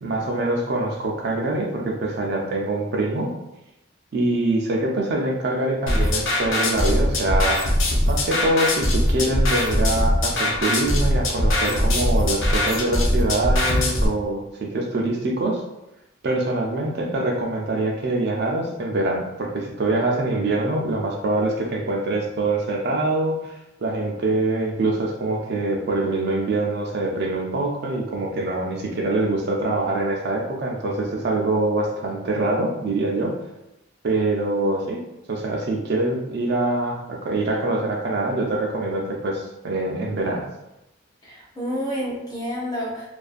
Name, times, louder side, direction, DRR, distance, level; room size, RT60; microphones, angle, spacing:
voice 1, 0.0-3.3 4.1-7.6 8.1-15.6 16.2-23.5 23.8-33.3 34.0-35.0 35.3-40.5, right 2 dB, 50° right, -1 dB, 0.4 m, -24 dB
sound 1, 5.9-14.1, left 1 dB, 65° left, 0.5 m, -21 dB
voice 2, 41.2-43.1, equal, 20° left, -5 dB, 0.6 m, -29 dB
2.4 x 2.3 x 2.4 m, 0.91 s
head